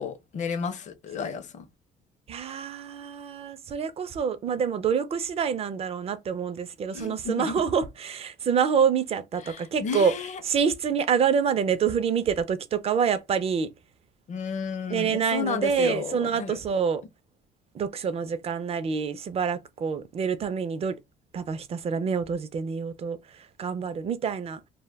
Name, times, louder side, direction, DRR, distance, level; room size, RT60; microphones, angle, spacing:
voice 1, 0.0-1.7 6.9-7.6 9.4-10.4 14.3-16.6, left 6 dB, 45° left, 0.5 m, -32 dB
voice 2, 2.3-10.1 10.4-13.7 14.9-17.0 17.7-21.0 21.3-24.6, right 6 dB, 35° right, 0.4 m, -27 dB
2.2 x 2.1 x 3.3 m
cardioid pair, 110°, 17 cm